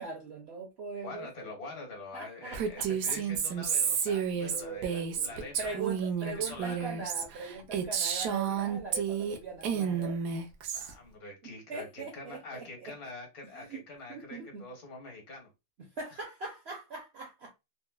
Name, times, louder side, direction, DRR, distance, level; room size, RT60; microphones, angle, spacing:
voice 1, 0.0-1.5 2.1-3.2 3.6-3.9 4.3-10.2 11.4-12.9 13.5-13.8 14.1-14.6 16.0-17.5, right 4 dB, 60° right, 0.7 m, -41 dB
voice 2, 1.0-5.8 6.2-6.9 10.7-15.5 16.1-16.2, left 2 dB, 65° left, 1.7 m, -45 dB
Female speech woman speaking, 2.5-9.4 9.6-10.9, right 7 dB, 85° right, 1.2 m, -31 dB
4.0 x 2.1 x 2.2 m
omnidirectional pair, 1.7 m